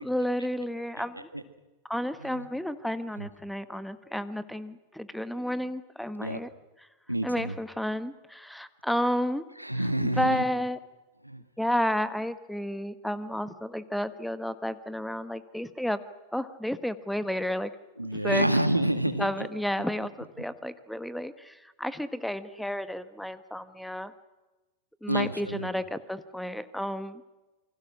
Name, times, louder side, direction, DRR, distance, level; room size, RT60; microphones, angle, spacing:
voice 1, 0.0-1.3 1.9-6.5 6.8-6.9 7.2-9.4 10.0-10.8 11.6-16.0 16.3-17.7 18.1-18.5 19.2-24.1 25.0-27.3, equal, ahead, 13 dB, 1.3 m, -31 dB
voice 2, 7.1-7.5 9.6-10.4 11.2-11.4 18.0-19.3 25.1-25.7, right 1 dB, 90° right, 10 dB, 1.8 m, -28 dB
28.0 x 25.0 x 6.2 m, 1.1 s
figure-of-eight pair, 90°, 0 cm